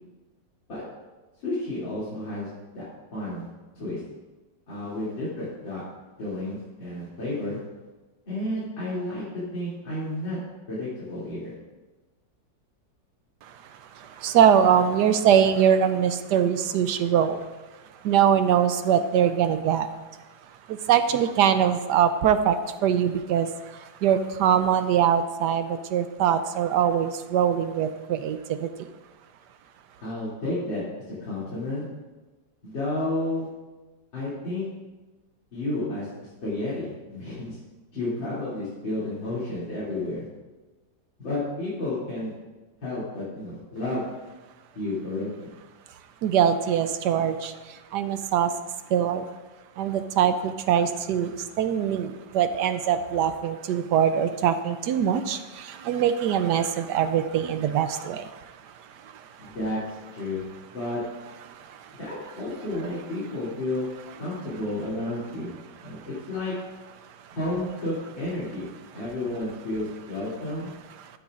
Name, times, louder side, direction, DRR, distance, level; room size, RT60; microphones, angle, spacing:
voice 1, 1.4-2.8 3.1-3.5 3.7-4.0 4.7-5.8 6.2-7.6 8.3-10.4 10.7-11.5 30.0-30.8 31.2-31.8 32.6-33.5 34.1-34.7 35.5-37.6 37.9-40.3 41.2-42.3 42.8-44.0 44.8-45.5 59.4-59.8 60.1-60.4 60.7-61.0 62.0-63.9 64.2-65.5 65.8-66.5 67.3-70.7, left 1 dB, 90° left, -10 dB, 3.6 m, -31 dB
voice 2, 14.2-17.4 18.0-19.9 20.9-22.6 22.8-23.5 24.0-28.7 46.2-47.5 47.9-48.5 48.9-49.2 49.8-51.3 51.6-58.3, right 9 dB, 75° right, 10 dB, 1.1 m, -22 dB
13.0 x 12.0 x 2.5 m, 1.2 s
omnidirectional pair, 2.0 m